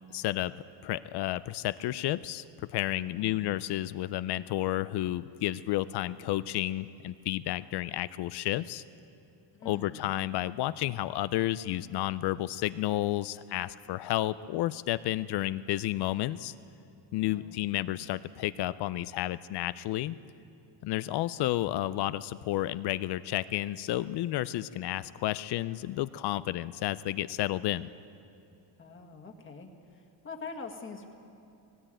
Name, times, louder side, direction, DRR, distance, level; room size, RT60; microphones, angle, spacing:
voice 1, 0.1-0.5 0.8-8.8 9.6-16.5 17.1-20.2 20.8-27.9, left 15 dB, 60° left, 16 dB, 0.5 m, -31 dB
voice 2, 3.1-3.5 9.5-10.1 17.3-17.6 28.8-31.1, left 4 dB, 25° left, 2 dB, 1.8 m, -44 dB
18.0 x 18.0 x 9.1 m, 2.7 s
cardioid pair, 150°, 46 cm